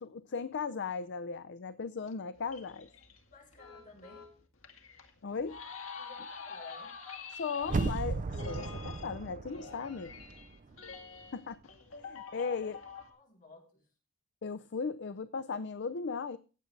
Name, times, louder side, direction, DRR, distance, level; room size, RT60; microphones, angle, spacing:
voice 1, 0.0-2.9 5.2-5.6 7.3-10.1 11.3-11.6 11.9-12.8 14.4-16.4, left 5 dB, 60° left, 0.5 m, -37 dB
sound 1, 2.1-13.1, left 5 dB, 90° left, 2.0 m, -47 dB
voice 2, 3.3-4.3 6.0-6.9 13.0-13.9, left 3 dB, 40° left, 3.7 m, -54 dB
sound 2, 7.6-10.6 10.9-11.0, right 3 dB, 40° right, 0.5 m, -35 dB
15.5 x 7.9 x 3.3 m
head